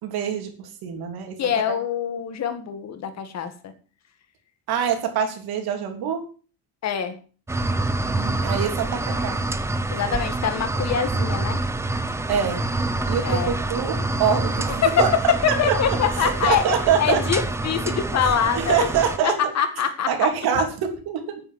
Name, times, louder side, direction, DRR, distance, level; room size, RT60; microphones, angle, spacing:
voice 1, 0.0-1.4 4.7-6.3 8.0-9.4 12.3-12.6 13.1-15.8 16.2-17.2 18.6-19.4 20.1-21.4, right 7 dB, 70° right, 4 dB, 3.3 m, -25 dB
voice 2, 1.4-3.7 6.8-7.2 9.9-11.6 13.2-13.6 14.8-18.9 19.2-20.1, left 8 dB, 45° left, 8 dB, 2.0 m, -24 dB
sound 1, 7.5-19.2, right 2 dB, 5° right, 0.6 m, -26 dB
9.4 x 9.3 x 7.6 m, 0.39 s
cardioid pair, 180°, 38 cm